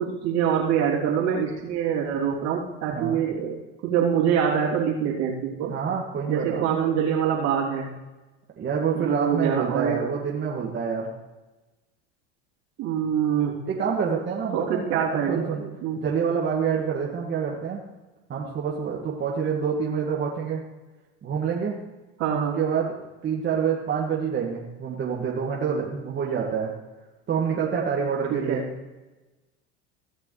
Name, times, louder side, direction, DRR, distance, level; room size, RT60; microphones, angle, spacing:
voice 1, 0.0-5.7 6.3-7.9 8.9-10.0 12.8-13.6 14.5-16.0 22.2-22.6 28.3-28.6, right 8 dB, 60° right, -3 dB, 3.2 m, -25 dB
voice 2, 2.9-3.2 5.7-6.8 8.6-11.1 13.7-15.6 16.0-17.8 18.3-20.6 21.2-21.8 22.6-22.9 23.2-26.7 27.3-28.6, right 6 dB, 35° right, -3 dB, 2.0 m, -27 dB
17.0 x 6.9 x 3.3 m, 1.1 s
supercardioid pair, 100°, 31 cm